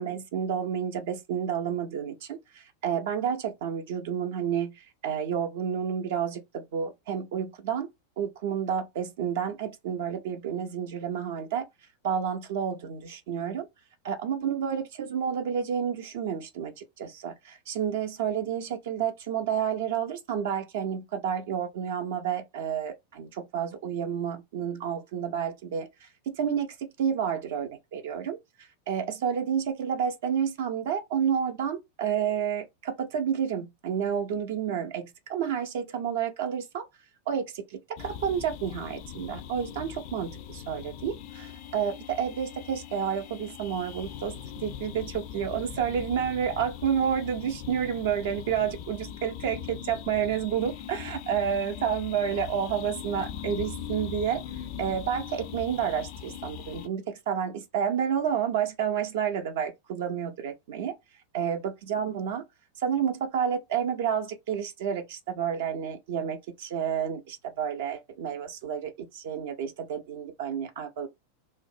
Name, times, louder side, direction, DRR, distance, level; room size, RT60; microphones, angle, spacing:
voice 1, 0.0-7.9 8.2-11.7 12.0-13.7 14.0-36.8 37.3-54.4 54.8-60.9 61.3-62.4 62.8-71.1, right 8 dB, 55° right, 0.4 m, -30 dB
sound 1, 38.0-56.9, left 9 dB, 45° left, 0.3 m, -41 dB
2.4 x 2.0 x 2.5 m
figure-of-eight pair, 90°, 0 cm